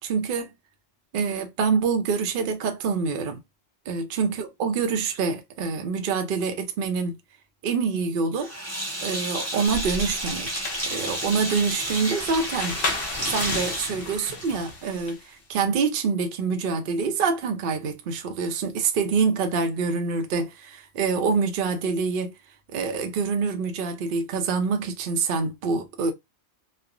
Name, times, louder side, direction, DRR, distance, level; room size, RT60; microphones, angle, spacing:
voice 1, 0.0-0.5 1.1-3.4 3.9-7.1 7.6-8.5 9.0-12.8 13.2-22.3 22.7-26.1, right 5 dB, 60° right, 0.6 m, -26 dB
Sink (filling or washing), 8.4-14.8, right 1 dB, 15° right, 0.8 m, -32 dB
sound 1, 9.7-15.2, left 2 dB, 55° left, 1.0 m, -33 dB
3.1 x 2.0 x 2.4 m
omnidirectional pair, 1.2 m